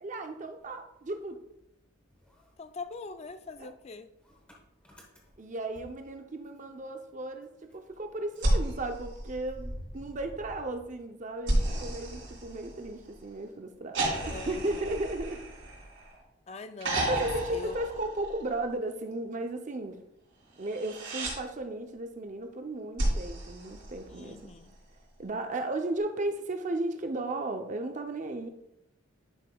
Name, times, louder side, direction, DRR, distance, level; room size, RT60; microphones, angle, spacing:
voice 1, 0.0-1.4 3.6-3.7 5.4-15.4 17.1-20.0 20.6-24.5 25.2-28.5, right 2 dB, 35° right, 5 dB, 0.6 m, -35 dB
Motor vehicle (road) / Engine starting, 0.7-1.8 2.1-6.8 7.1-7.2 7.4-11.5, equal, 5° left, 1.0 m, -49 dB
voice 2, 2.6-4.1 14.3-14.9 16.5-17.8 24.1-24.8, left 4 dB, 30° left, 10 dB, 0.3 m, -43 dB
sound 1, 8.4-9.9 11.5-13.1 13.9-16.2 16.8-18.6 20.6-21.4 23.0-24.5 26.0-26.1, right 1 dB, 65° right, 2.6 m, -32 dB
10.0 x 5.5 x 2.3 m, 0.85 s
head